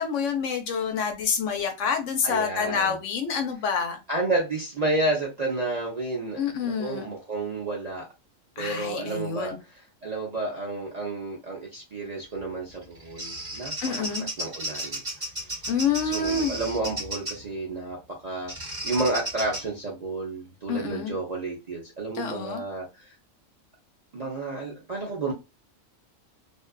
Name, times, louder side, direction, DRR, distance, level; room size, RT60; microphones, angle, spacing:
voice 1, 0.0-4.0 6.4-7.1 8.6-9.6 13.8-14.3 15.7-16.5 20.7-21.2 22.1-22.6, left 6 dB, 70° left, 0.9 m, -27 dB
voice 2, 2.2-3.0 4.1-8.1 8.6-15.0 15.4-15.6 16.0-23.1 24.1-25.3, right 2 dB, 45° right, 0.5 m, -31 dB
Bird vocalization bird call bird song, 12.7-17.5 18.5-19.6, right 1 dB, 20° right, 1.0 m, -34 dB
2.6 x 2.3 x 2.2 m
omnidirectional pair, 1.4 m